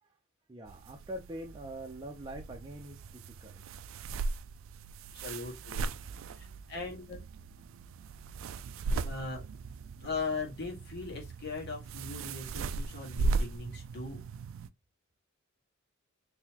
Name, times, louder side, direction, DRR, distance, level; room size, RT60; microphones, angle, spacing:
voice 1, 0.5-3.7, right 1 dB, 20° right, 0.6 m, -44 dB
sound 1, 0.7-14.7, right 3 dB, 70° right, 0.3 m, -38 dB
voice 2, 5.1-5.9 6.2-7.2 9.0-9.4 10.0-14.2, left 4 dB, 55° left, 1.6 m, -39 dB
3.8 x 3.0 x 2.9 m
head